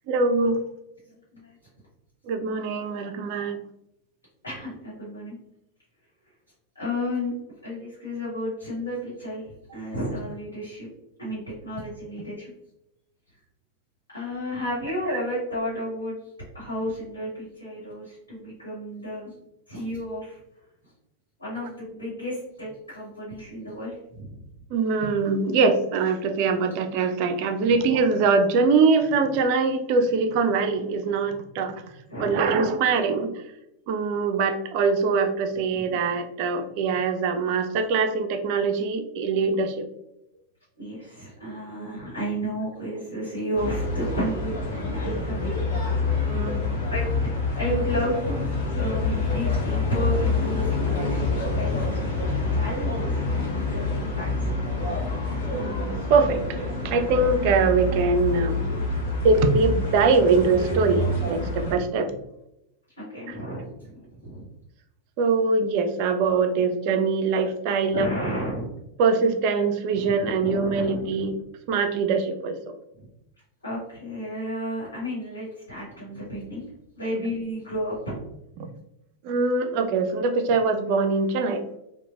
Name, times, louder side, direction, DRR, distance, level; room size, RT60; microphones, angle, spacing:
voice 1, 0.1-0.6 2.3-3.6 24.7-31.7 32.2-33.3 33.9-39.9 46.3-46.7 55.5-56.4 56.8-58.6 59.2-62.1 65.2-68.1 69.0-71.3 71.7-72.7 79.2-81.6, right 4 dB, 45° right, 7 dB, 0.3 m, -23 dB
voice 2, 4.4-5.4 6.7-7.3 7.6-10.9 11.2-12.5 14.1-16.2 16.5-19.3 19.7-20.4 21.4-24.4 27.7-27.9 32.1-32.7 35.7-35.9 40.8-45.5 46.0-46.1 46.8-47.1 47.5-52.0 52.5-54.5 63.0-64.5 67.9-68.7 69.9-71.3 72.9-73.1 73.6-76.6 76.9-78.2, equal, 75° left, -7 dB, 1.1 m, -32 dB
sound 1, 43.5-61.7, left 3 dB, 60° left, 0.6 m, -27 dB
3.0 x 2.0 x 2.4 m, 0.84 s
figure-of-eight pair, 90°, 0 cm